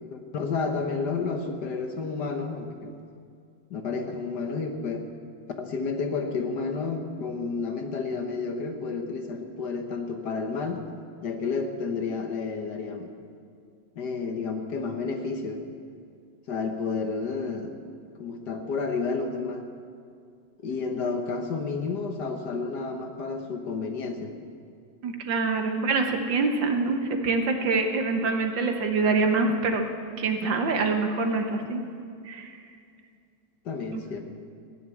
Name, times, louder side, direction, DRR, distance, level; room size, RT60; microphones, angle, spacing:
voice 1, 0.1-2.9 3.7-5.1 5.6-10.8 11.2-13.1 14.0-15.6 16.5-17.7 18.2-19.7 20.6-24.3 33.6-34.2, left 4 dB, 60° left, 5 dB, 1.6 m, -31 dB
voice 2, 25.0-29.9 30.2-31.8 32.3-32.5 33.9-34.0, right 3 dB, 65° right, 5 dB, 1.8 m, -25 dB
15.5 x 10.0 x 8.5 m, 2.4 s
omnidirectional pair, 2.2 m